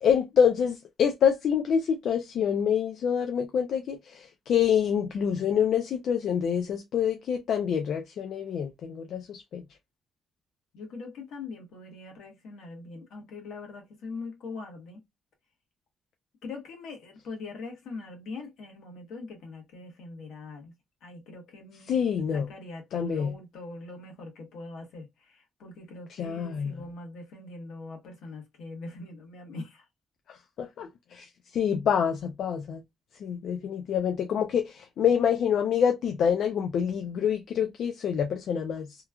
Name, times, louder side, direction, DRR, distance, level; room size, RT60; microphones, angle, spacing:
voice 1, 0.0-9.6 21.9-22.5 22.9-23.3 26.2-26.7 30.3-32.8 33.2-38.9, left 8 dB, 55° left, 0.4 m, -26 dB
voice 2, 10.7-15.0 16.4-20.7 21.0-22.0 22.3-29.9, left 3 dB, 70° left, 1.1 m, -42 dB
3.0 x 2.3 x 2.2 m
cardioid pair, 170°, 0 cm